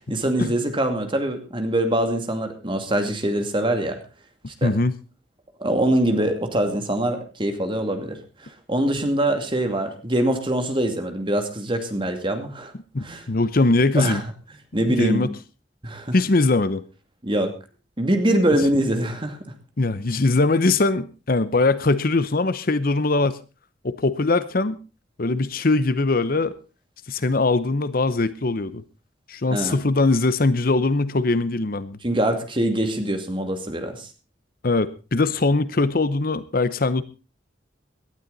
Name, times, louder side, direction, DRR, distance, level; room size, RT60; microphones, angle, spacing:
voice 1, 0.1-4.0 4.6-4.7 5.6-12.7 13.0-13.2 13.9-14.2 14.7-15.3 15.8-16.1 17.2-17.5 18.0-19.4 29.5-29.8 32.0-34.1, right 1 dB, 25° right, 6 dB, 2.4 m, -23 dB
voice 2, 4.6-4.9 12.9-14.2 14.9-15.3 16.1-16.8 19.8-23.4 23.8-24.8 25.2-26.5 27.1-28.8 29.3-32.0 34.6-37.0, left 3 dB, 50° left, 15 dB, 0.8 m, -21 dB
18.0 x 12.5 x 4.0 m, 0.32 s
head